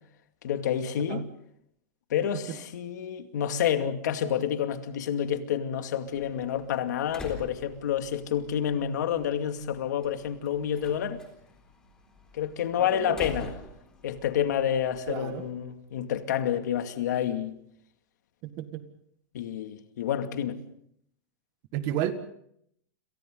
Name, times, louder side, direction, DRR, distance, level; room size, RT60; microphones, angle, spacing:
voice 1, 0.4-1.3 2.1-11.2 12.3-13.5 14.0-17.6 19.3-20.6, left 9 dB, 80° left, 2.4 m, -29 dB
Slam, 6.1-15.5, left 2 dB, 10° left, 3.9 m, -47 dB
voice 2, 12.8-13.2 15.1-15.4 18.4-18.8 21.7-22.1, right 12 dB, 30° right, 1.8 m, -32 dB
30.0 x 27.5 x 3.9 m
supercardioid pair, 180°, 9 cm